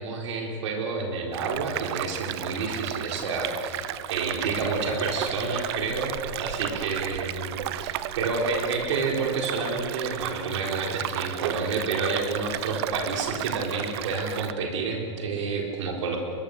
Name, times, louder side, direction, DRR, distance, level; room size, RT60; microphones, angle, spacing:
voice 1, 0.0-16.2, right 4 dB, 75° right, 1 dB, 4.3 m, -29 dB
sound 1, 1.3-14.5, right 14 dB, 55° right, 0.9 m, -34 dB
22.0 x 22.0 x 6.7 m, 2.5 s
hypercardioid pair, 120°, 16 cm